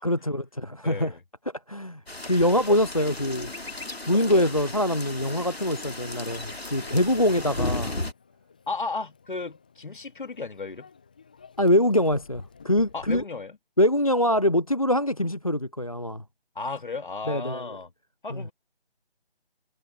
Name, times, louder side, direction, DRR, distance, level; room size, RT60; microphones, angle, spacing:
voice 1, 0.0-1.1 1.7-3.5 4.1-8.0 11.6-13.2 13.8-16.2 17.3-17.6 18.3-18.5, left 1 dB, 35° left, 0.4 m, -24 dB
voice 2, 0.8-1.2 4.2-4.5 8.7-10.9 12.9-13.6 16.6-17.9 18.2-18.5, left 3 dB, 55° left, 2.4 m, -34 dB
sound 1, 2.1-8.1, left 2 dB, 85° left, 2.3 m, -35 dB
Microwave oven, 5.8-13.2, left 5 dB, 10° left, 0.8 m, -51 dB
figure-of-eight pair, 160°, 31 cm